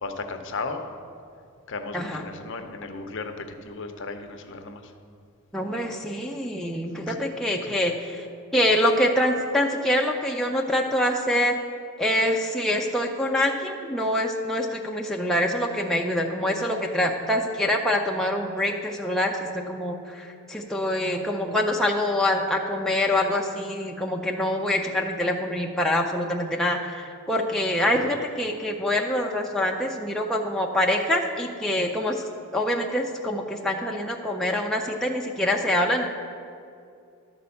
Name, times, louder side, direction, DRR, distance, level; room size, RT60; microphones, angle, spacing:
voice 1, 0.0-0.9 1.7-4.8 7.1-7.2 7.6-7.8 27.9-28.1, left 3 dB, 55° left, 6 dB, 0.7 m, -35 dB
voice 2, 1.9-2.3 5.5-8.3 8.5-11.6 12.0-32.2 32.5-36.1, left 1 dB, ahead, -1 dB, 0.4 m, -25 dB
12.0 x 4.3 x 7.0 m, 2.4 s
head